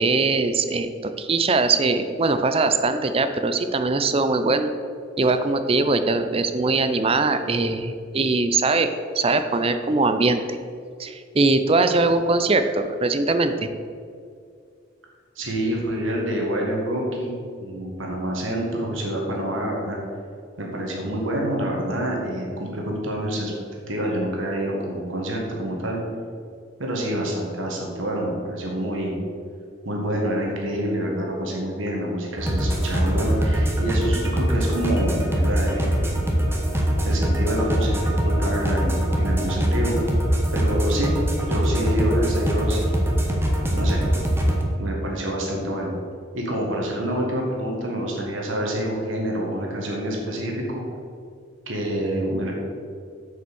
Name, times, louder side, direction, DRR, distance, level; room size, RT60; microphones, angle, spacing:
voice 1, 0.0-4.7 5.2-8.9 9.1-10.6 11.0-13.7, right 3 dB, 30° right, 9 dB, 0.5 m, -21 dB
voice 2, 15.4-20.0 20.6-23.5 23.9-26.0 26.8-29.2 29.9-36.2 37.0-40.0 40.5-41.1 41.5-43.1 43.7-44.0 44.8-45.9 46.3-50.8 51.7-52.5, right 1 dB, 75° right, -1 dB, 1.7 m, -27 dB
sound 1, 32.4-44.6, equal, 10° right, 1.1 m, -22 dB
7.8 x 5.3 x 7.0 m, 2.3 s
head